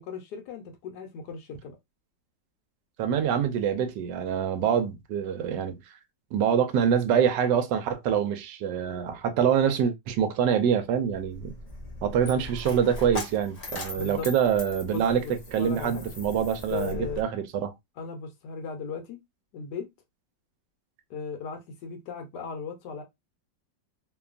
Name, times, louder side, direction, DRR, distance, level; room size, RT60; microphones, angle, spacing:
voice 1, 0.0-1.8 13.9-14.3 14.9-16.0 16.7-17.2 18.0-19.2 19.5-19.9 21.1-23.0, left 5 dB, 70° left, 1.2 m, -37 dB
voice 2, 3.0-5.9 6.3-11.5 12.0-15.2 15.5-17.7, right 8 dB, 80° right, 1.2 m, -25 dB
Coin (dropping), 11.1-17.2, left 1 dB, 45° left, 0.5 m, -39 dB
3.0 x 2.2 x 2.4 m
omnidirectional pair, 2.0 m